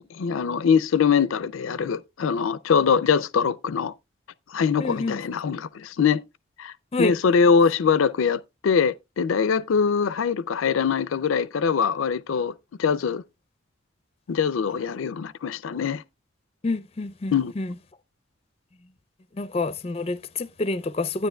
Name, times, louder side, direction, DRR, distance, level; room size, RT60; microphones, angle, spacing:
voice 1, 0.2-3.9 4.5-6.2 6.6-6.7 7.0-12.5 12.8-13.2 14.3-16.0 17.3-17.5, left 6 dB, 85° left, 0.4 m, -23 dB
voice 2, 4.8-5.2 6.9-7.1 16.6-17.7 19.4-21.3, left 3 dB, 30° left, 0.5 m, -28 dB
12.5 x 9.3 x 2.2 m
head